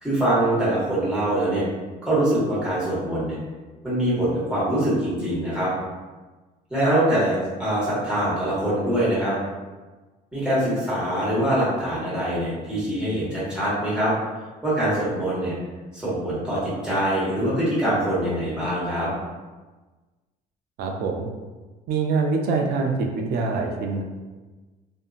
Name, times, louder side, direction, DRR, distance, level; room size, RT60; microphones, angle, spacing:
voice 1, 0.0-1.6 2.0-3.4 3.8-5.7 6.7-9.3 10.3-14.1 14.6-15.5 15.9-19.1, right 1 dB, 5° right, -10 dB, 1.5 m, -23 dB
voice 2, 20.8-21.3 21.9-24.0, right 4 dB, 70° right, 2 dB, 0.4 m, -24 dB
2.7 x 2.6 x 2.4 m, 1.2 s
cardioid pair, 110°, 17 cm